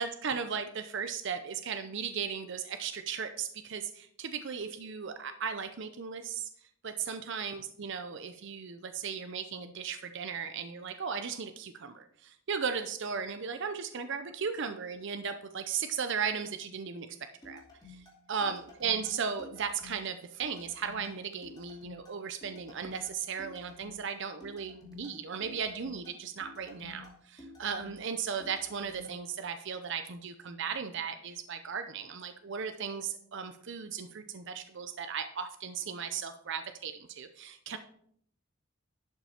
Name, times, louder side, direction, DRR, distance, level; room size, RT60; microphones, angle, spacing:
voice 1, 0.0-6.5 6.8-17.1 17.4-17.6 18.3-37.8, right 6 dB, 60° right, 9 dB, 0.6 m, -36 dB
sound 1, 17.4-29.1, left 3 dB, 20° left, 2.7 m, -52 dB
11.5 x 5.7 x 4.3 m, 0.64 s
head